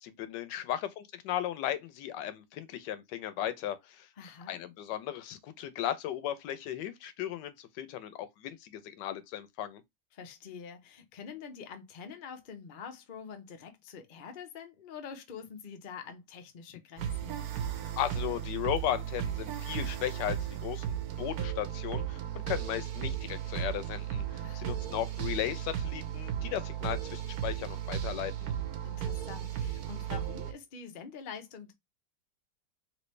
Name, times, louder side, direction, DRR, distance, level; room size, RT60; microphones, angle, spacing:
voice 1, 0.0-4.1 4.5-9.8 18.0-22.2 22.5-28.5, left 11 dB, 85° left, 1.2 m, -36 dB
voice 2, 4.2-4.5 10.1-17.4 24.4-24.8 28.8-31.7, left 6 dB, 60° left, 0.5 m, -46 dB
sound 1, 17.0-30.5, right 10 dB, 70° right, 1.1 m, -35 dB
3.1 x 3.0 x 3.1 m
omnidirectional pair, 1.8 m